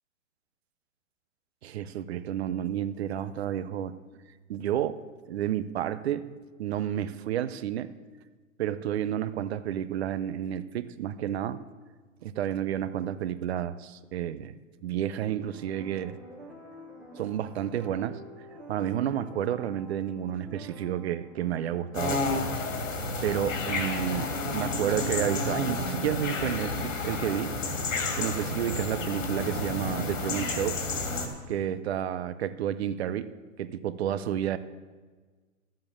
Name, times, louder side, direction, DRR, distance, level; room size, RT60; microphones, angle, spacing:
voice 1, 1.6-4.0 4.5-7.9 8.6-11.6 12.2-14.5 14.8-16.2 17.2-18.2 18.7-22.2 23.2-27.5 28.2-30.8 31.5-33.3 33.6-34.6, right 10 dB, 50° right, 14 dB, 0.7 m, -31 dB
sound 1, 15.4-27.0, right 1 dB, ahead, 0.4 m, -48 dB
sound 2, 21.9-31.3, left 3 dB, 70° left, 2.5 m, -31 dB
12.0 x 7.6 x 7.1 m, 1.4 s
hypercardioid pair, 145°, 40 cm